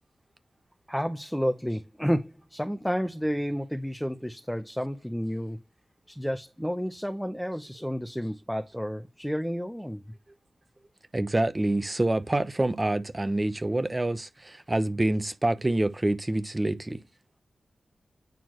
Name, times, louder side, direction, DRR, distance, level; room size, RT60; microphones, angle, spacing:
voice 1, 0.9-5.6 6.1-10.0, equal, ahead, 0.9 m, -31 dB
voice 2, 11.1-17.0, right 1 dB, 25° right, 0.9 m, -27 dB
9.2 x 4.3 x 3.0 m
cardioid pair, 55°, 0 cm